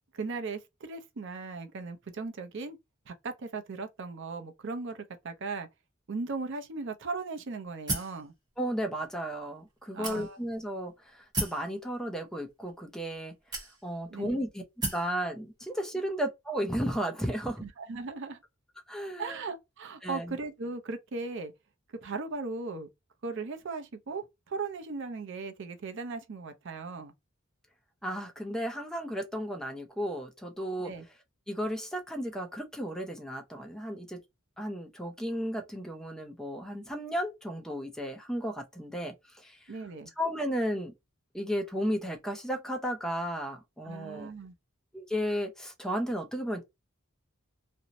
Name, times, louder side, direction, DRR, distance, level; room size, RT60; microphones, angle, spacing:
voice 1, 0.1-2.8 3.1-5.7 6.1-8.3 9.9-10.4 14.1-14.3 17.6-18.4 19.2-21.5 22.0-22.9 23.2-27.1 30.9-31.1 39.7-40.1 43.8-44.5, right 4 dB, 60° right, 0.5 m, -37 dB
sound 1, 7.9-8.2 9.0-9.1 10.0-10.6 11.3-11.7 12.6-12.7 13.5-14.1 14.8-15.1, right 2 dB, 20° right, 1.0 m, -33 dB
voice 2, 8.6-13.3 13.8-14.6 14.9-17.6 18.9-19.4 20.0-20.4 28.0-30.9 31.5-34.2 34.6-39.7 40.2-40.9 41.3-44.3 44.9-46.6, equal, 5° left, 0.5 m, -34 dB
2.6 x 2.1 x 2.7 m
head